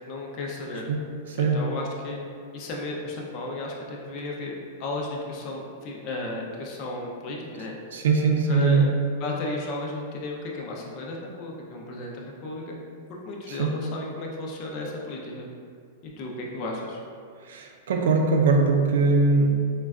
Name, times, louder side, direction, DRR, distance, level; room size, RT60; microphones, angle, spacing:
voice 1, 0.1-0.8 1.4-2.2 2.5-4.5 4.8-7.8 8.5-8.9 9.2-12.8 13.1-15.5 16.0-17.0, left 2 dB, 40° left, -1 dB, 0.5 m, -34 dB
voice 2, 1.3-1.6 7.9-8.9 13.5-13.8 17.5-19.5, right 4 dB, 80° right, 2 dB, 0.4 m, -21 dB
3.8 x 2.2 x 2.4 m, 2.3 s
supercardioid pair, 150°, 0 cm